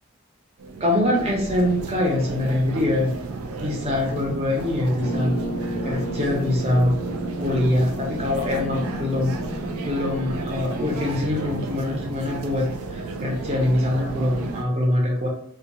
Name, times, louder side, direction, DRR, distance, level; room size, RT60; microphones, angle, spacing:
sound 1, 0.6-14.6, right 3 dB, 85° right, 0.4 m, -33 dB
voice 1, 0.8-3.1 3.6-5.4 5.8-6.9 7.4-9.3 9.8-15.3, left 1 dB, 30° right, -1 dB, 0.6 m, -23 dB
sound 2, 5.0-11.1, equal, 45° left, 0.4 m, -32 dB
2.3 x 2.2 x 2.9 m, 0.67 s
head